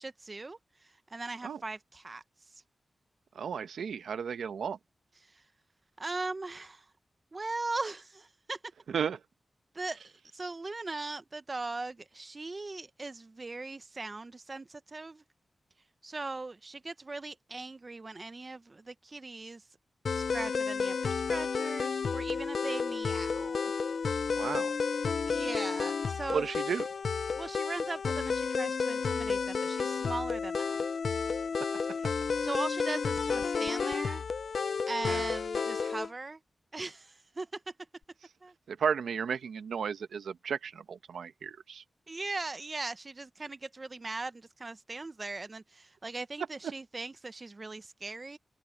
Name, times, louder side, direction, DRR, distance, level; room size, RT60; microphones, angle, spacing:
voice 1, 0.0-2.2 5.3-5.4 6.0-6.9 7.3-8.6 9.7-15.2 16.0-19.6 20.1-23.6 24.1-24.3 25.3-26.6 27.4-30.8 32.4-34.2 34.9-36.4 36.7-37.7 38.4-38.5 42.1-48.4, right 3 dB, 40° right, 1.0 m, -39 dB
voice 2, 3.3-4.8 8.9-9.2 24.3-24.8 26.3-26.8 35.1-35.2 38.7-41.8, right 7 dB, 85° right, 0.9 m, -34 dB
sound 1, 20.1-36.1, left 5 dB, 70° left, 0.4 m, -31 dB
cardioid pair, 50°, 0 cm